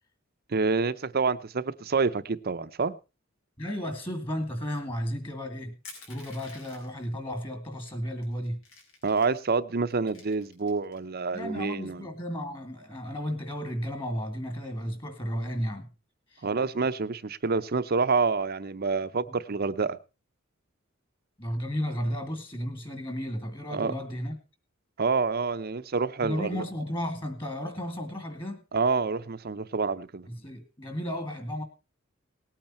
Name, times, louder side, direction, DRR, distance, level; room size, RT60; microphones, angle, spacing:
voice 1, 0.5-3.0 9.0-12.1 16.4-20.0 23.7-23.9 25.0-26.6 28.7-30.3, right 4 dB, 50° right, 0.7 m, -27 dB
voice 2, 3.6-5.8 6.1-8.6 11.3-15.9 16.3-16.5 19.2-19.3 21.4-24.4 26.2-28.6 30.3-31.6, equal, 25° left, 2.4 m, -33 dB
Crushing, 5.8-7.0 7.8-7.9 8.2-9.4 9.9-11.0, left 3 dB, 80° left, 4.7 m, -49 dB
18.5 x 8.9 x 4.3 m
head